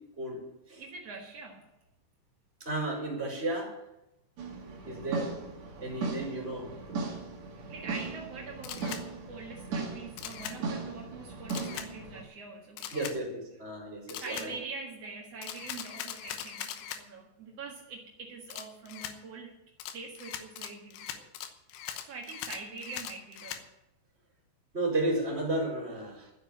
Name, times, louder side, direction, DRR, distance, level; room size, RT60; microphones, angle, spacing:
voice 1, 0.8-1.7 7.7-13.1 14.1-19.5 19.9-21.3 22.0-23.7, right 4 dB, 70° right, -2 dB, 1.5 m, -44 dB
voice 2, 2.6-3.7 4.8-5.3 5.8-6.7 12.9-14.5 24.7-26.3, right 2 dB, 15° right, -1 dB, 4.2 m, -33 dB
sound 1, 4.4-12.2, right 4 dB, 45° right, 2.4 m, -38 dB
Camera, 8.6-9.0 10.2-10.6 11.5-11.9 12.8-13.2 14.1-14.5 15.4-17.0 18.5-19.2 19.8-23.6, left 10 dB, 80° left, 3.3 m, -40 dB
13.0 x 8.0 x 8.4 m, 0.89 s
omnidirectional pair, 5.7 m